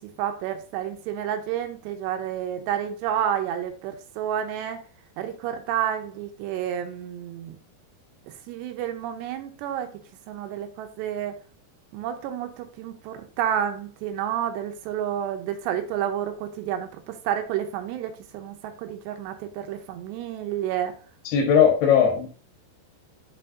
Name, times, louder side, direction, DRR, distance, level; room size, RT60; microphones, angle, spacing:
voice 1, 0.2-4.8 5.2-7.6 8.5-9.9 10.3-11.4 11.9-20.9, right 10 dB, 85° right, 6 dB, 2.9 m, -30 dB
voice 2, 21.3-22.3, left 7 dB, 70° left, 2 dB, 3.2 m, -18 dB
6.8 x 5.7 x 2.6 m, 0.40 s
omnidirectional pair, 5.0 m